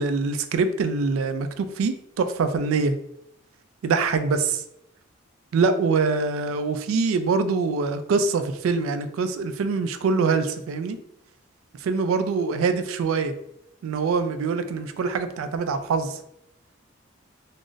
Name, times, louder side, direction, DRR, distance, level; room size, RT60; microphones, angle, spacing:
voice 1, 0.0-3.0 3.8-4.6 5.5-11.0 11.8-13.3 13.8-16.2, right 4 dB, 85° right, 10 dB, 0.3 m, -24 dB
2.4 x 2.0 x 3.8 m, 0.79 s
head